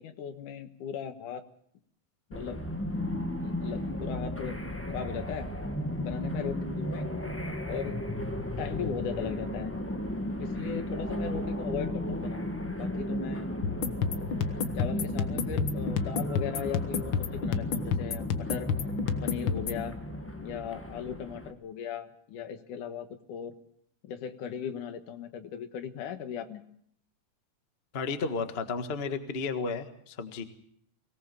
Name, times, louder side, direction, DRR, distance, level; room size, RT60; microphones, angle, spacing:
voice 1, 0.0-1.4 2.3-2.6 3.4-4.6 4.9-5.5 6.0-7.1 7.7-8.0 8.6-9.7 10.4-13.5 14.8-18.7 19.2-20.0 20.4-23.5 24.0-26.6, left 8 dB, 80° left, 9 dB, 3.0 m, -37 dB
sound 1, 2.3-21.5, equal, 10° left, 0.5 m, -35 dB
sound 2, 13.6-19.8, left 6 dB, 55° left, 1.4 m, -31 dB
voice 2, 27.9-30.4, left 4 dB, 30° left, 8 dB, 1.1 m, -33 dB
24.0 x 18.0 x 6.9 m, 0.68 s
omnidirectional pair, 3.6 m